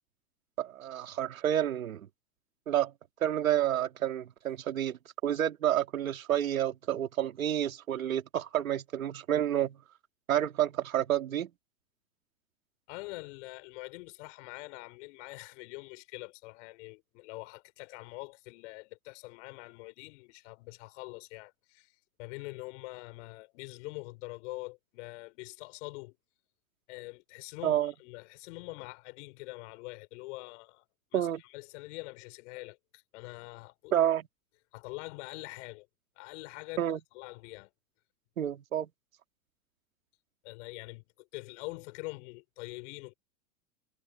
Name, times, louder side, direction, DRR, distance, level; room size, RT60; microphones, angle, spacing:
voice 1, 0.6-2.1 2.7-2.9 3.2-9.8 10.3-11.5 27.6-27.9 31.1-31.4 33.9-34.3 36.8-37.0 38.4-38.9, right 11 dB, 80° right, 3.0 m, -29 dB
voice 2, 12.9-21.9 22.2-26.1 26.9-30.8 31.1-33.9 34.7-35.9 36.2-36.8 37.1-37.7 40.4-43.1, left 24 dB, 60° left, 6.1 m, -44 dB
hypercardioid pair, 95°, 41 cm